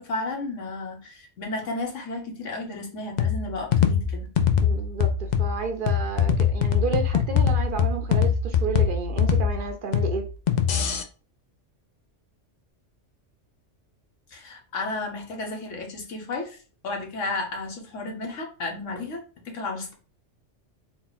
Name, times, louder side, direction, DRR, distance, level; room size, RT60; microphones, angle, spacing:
voice 1, 0.0-4.3 14.3-16.6 16.8-19.9, left 2 dB, 85° left, 1.4 m, -33 dB
sound 1, 3.2-11.0, left 7 dB, 60° left, 0.5 m, -23 dB
voice 2, 4.6-10.3, right 4 dB, 60° right, 0.6 m, -31 dB
4.0 x 2.3 x 4.0 m
omnidirectional pair, 1.3 m